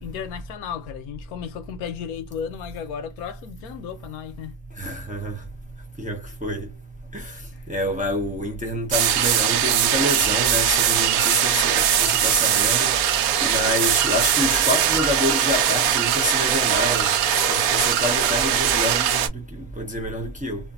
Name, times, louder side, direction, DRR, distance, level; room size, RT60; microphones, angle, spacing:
voice 1, 0.0-4.6 7.5-7.6, left 8 dB, 90° left, 1.1 m, -34 dB
voice 2, 4.8-5.3 6.0-6.7 7.1-7.3 7.7-12.9 13.4-17.1 17.5-20.6, left 1 dB, 15° right, 0.3 m, -27 dB
sound 1, 8.9-19.3, right 10 dB, 80° right, 1.0 m, -21 dB
2.5 x 2.5 x 2.4 m
omnidirectional pair, 1.5 m